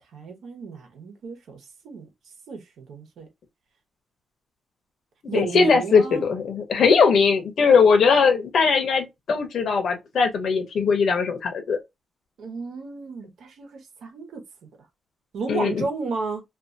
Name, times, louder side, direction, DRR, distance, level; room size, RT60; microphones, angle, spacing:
voice 1, 0.1-2.1 2.5-3.3 5.3-6.2 12.4-14.4 15.3-16.4, right 4 dB, 80° right, 1.0 m, -33 dB
voice 2, 5.3-11.8 15.5-15.8, left 5 dB, 55° left, 0.7 m, -20 dB
2.6 x 2.5 x 2.5 m
wide cardioid pair, 160°, 0 cm